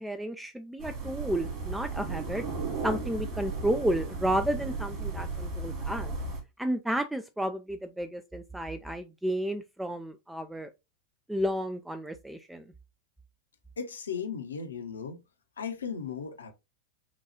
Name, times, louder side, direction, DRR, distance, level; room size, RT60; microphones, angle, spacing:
voice 1, 0.0-2.4 2.8-6.1 6.6-10.7 11.3-12.6, right 1 dB, 5° right, 0.3 m, -32 dB
sound 1, 0.8-6.4, right 3 dB, 35° right, 2.0 m, -35 dB
voice 2, 13.8-15.2 15.6-16.5, left 6 dB, 70° left, 0.7 m, -36 dB
5.9 x 2.3 x 2.8 m
figure-of-eight pair, 90°, 0 cm